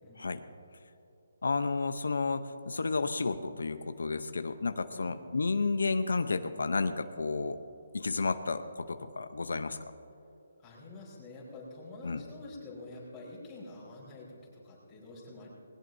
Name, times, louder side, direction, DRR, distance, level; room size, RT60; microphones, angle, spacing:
voice 1, 1.4-7.6 7.9-9.8 12.0-12.2, left 4 dB, 85° left, 9 dB, 0.7 m, -31 dB
voice 2, 10.6-15.5, left 2 dB, 10° left, -7 dB, 4.2 m, -47 dB
20.0 x 18.0 x 2.7 m, 2.8 s
hypercardioid pair, 170°, 0 cm